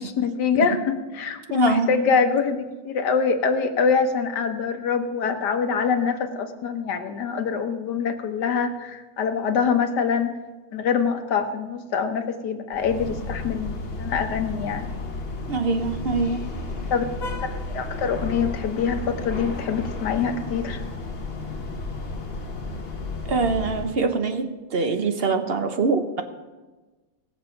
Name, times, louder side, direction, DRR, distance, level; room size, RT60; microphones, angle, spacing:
voice 1, 0.0-10.3 10.7-14.9 16.9-17.0 17.4-17.5 17.7-20.8, left 6 dB, 70° left, 7 dB, 1.6 m, -24 dB
voice 2, 1.5-1.9 15.5-16.4 23.3-26.2, right 4 dB, 45° right, 7 dB, 0.8 m, -24 dB
sound 1, 12.7-23.9, left 3 dB, 40° left, 1.2 m, -32 dB
18.5 x 7.0 x 5.7 m, 1.2 s
omnidirectional pair, 1.9 m